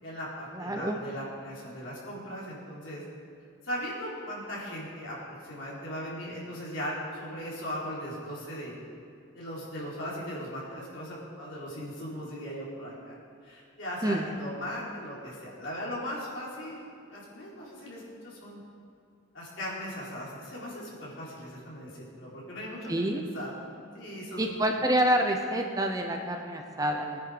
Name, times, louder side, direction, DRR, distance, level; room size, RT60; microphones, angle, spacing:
voice 1, 0.0-3.1 3.6-8.7 9.3-13.2 13.4-16.8 17.1-18.6 19.3-23.5 23.9-24.4, equal, 65° left, -6 dB, 4.1 m, -38 dB
voice 2, 0.5-1.0 14.0-14.3 22.9-23.3 24.4-27.2, right 1 dB, 15° right, 3 dB, 0.8 m, -27 dB
19.0 x 9.9 x 5.1 m, 2.4 s
head